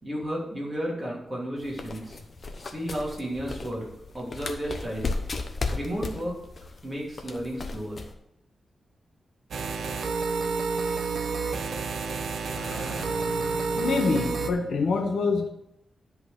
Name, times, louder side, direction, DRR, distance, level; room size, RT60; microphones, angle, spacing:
voice 1, 0.0-2.2 2.6-3.9 4.1-5.1 5.7-6.3 6.8-8.0, equal, 20° right, -4 dB, 2.7 m, -33 dB
sound 1, 1.6-8.1, left 3 dB, 40° left, 0.8 m, -35 dB
sound 2, 9.5-14.5, right 4 dB, 80° right, 0.7 m, -29 dB
voice 2, 12.6-15.5, left 4 dB, 75° left, 5 dB, 1.0 m, -27 dB
10.5 x 4.0 x 6.2 m, 0.83 s
wide cardioid pair, 165°, 0 cm